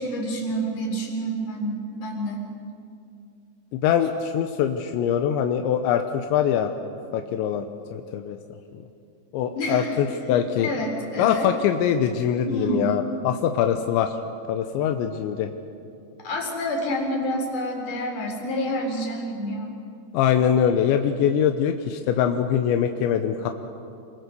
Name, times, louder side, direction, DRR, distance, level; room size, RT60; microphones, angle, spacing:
voice 1, 0.0-2.5 9.6-11.5 12.5-12.9 16.2-19.7, equal, 45° left, 0 dB, 5.3 m, -28 dB
voice 2, 3.8-6.7 7.1-7.7 7.9-8.4 9.3-10.7 11.2-14.1 14.5-15.5 20.1-23.5, left 9 dB, 85° left, 6 dB, 3.2 m, -23 dB
28.0 x 24.0 x 6.9 m, 2.5 s
omnidirectional pair, 5.1 m